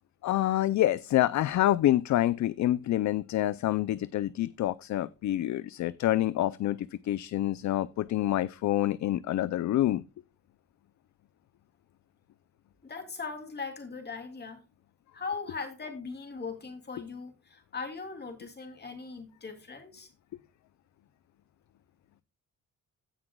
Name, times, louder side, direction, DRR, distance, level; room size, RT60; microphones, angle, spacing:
voice 1, 0.2-10.0, left 13 dB, 60° left, 0.5 m, -27 dB
voice 2, 12.8-14.6 15.1-20.1, left 4 dB, 30° left, 2.8 m, -39 dB
16.5 x 6.0 x 2.3 m
cardioid pair, 120°, 33 cm